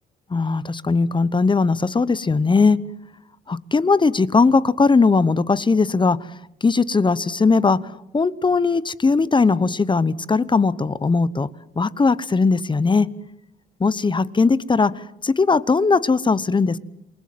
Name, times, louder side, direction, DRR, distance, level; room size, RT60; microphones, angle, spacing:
voice 1, 0.3-2.8 3.5-6.2 6.6-7.8 8.1-11.5 11.8-13.1 13.8-16.8, left 4 dB, 25° left, 18 dB, 1.0 m, -19 dB
28.0 x 20.5 x 7.7 m, 0.82 s
cardioid pair, 90°, 20 cm